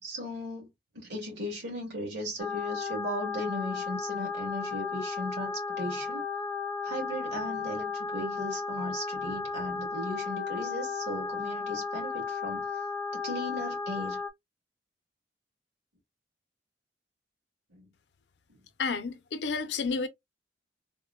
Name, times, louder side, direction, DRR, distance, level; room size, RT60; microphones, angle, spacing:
voice 1, 0.0-6.2 6.8-12.9 13.1-14.2 17.7-17.9 18.5-18.6, equal, 75° right, 2.1 m, -37 dB
sound 1, 2.4-14.3, left 5 dB, 20° left, 0.5 m, -34 dB
voice 2, 18.8-20.1, left 4 dB, 75° left, 0.6 m, -31 dB
3.6 x 2.1 x 2.3 m
head